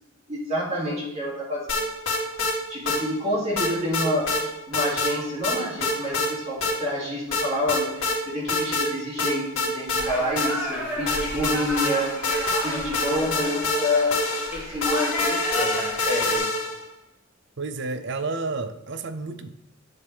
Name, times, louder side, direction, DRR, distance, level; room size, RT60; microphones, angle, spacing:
voice 1, 0.3-1.9 2.7-12.1 12.6-14.2 14.5-16.5, left 1 dB, 30° right, -6 dB, 2.6 m, -28 dB
sound 1, 1.7-2.5 2.9-3.0 3.6-4.4 4.7-5.1 5.4-6.3 6.6-6.7 7.3-8.2 8.5-8.9 9.2-10.7 11.1-16.8, left 2 dB, 75° left, 2.2 m, -26 dB
sound 2, 9.9-16.4, equal, 10° right, 3.0 m, -33 dB
voice 2, 17.6-19.5, right 3 dB, 60° right, 9 dB, 0.6 m, -30 dB
9.7 x 7.1 x 3.4 m, 0.90 s
head